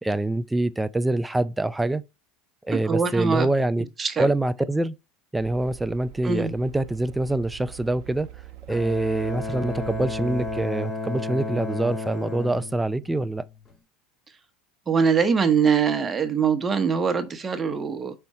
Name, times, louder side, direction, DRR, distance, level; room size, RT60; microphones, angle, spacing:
voice 1, 0.0-2.0 2.6-3.9 4.2-5.0 5.3-8.3 8.7-13.4, right 2 dB, 10° right, 0.5 m, -25 dB
voice 2, 2.7-3.5 4.0-4.3 6.2-6.5 14.9-18.1, right 6 dB, 25° right, 1.0 m, -23 dB
sound 1, 5.3-10.7, right 15 dB, 55° right, 1.0 m, -43 dB
Bowed string instrument, 8.7-13.7, left 3 dB, 30° left, 1.7 m, -33 dB
5.2 x 4.4 x 4.8 m
hypercardioid pair, 90°, 0 cm